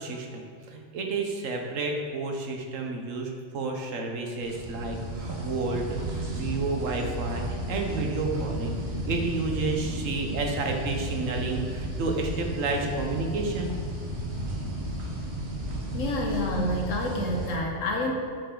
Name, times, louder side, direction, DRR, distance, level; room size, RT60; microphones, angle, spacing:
voice 1, 0.0-13.7, right 3 dB, 85° right, 2 dB, 1.3 m, -31 dB
sound 1, 4.4-17.6, equal, 60° right, 1.5 m, -33 dB
voice 2, 15.9-18.1, left 1 dB, 85° left, 0 dB, 1.5 m, -28 dB
9.1 x 5.3 x 3.9 m, 2.2 s
omnidirectional pair, 1.3 m